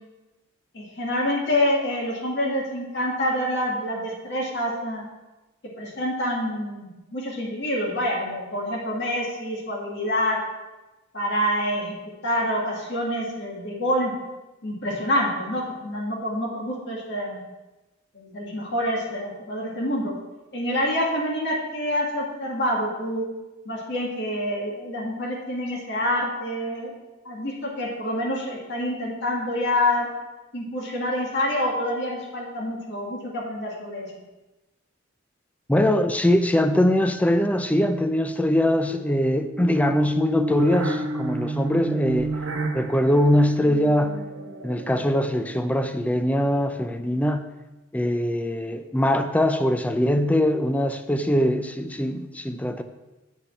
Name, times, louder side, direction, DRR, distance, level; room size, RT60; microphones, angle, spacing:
voice 1, 0.7-5.0 5.8-10.4 11.1-11.9 12.2-14.1 14.6-17.4 18.1-20.1 20.5-23.2 23.7-26.9 27.2-30.1 30.5-34.1, left 1 dB, 55° left, -3 dB, 2.1 m, -27 dB
voice 2, 35.7-42.3 42.7-44.2 44.6-47.5 47.9-52.8, left 1 dB, 5° left, 9 dB, 0.4 m, -22 dB
sound 1, 39.5-45.9, right 2 dB, 65° right, 1.1 m, -30 dB
8.4 x 5.6 x 5.8 m, 1.1 s
head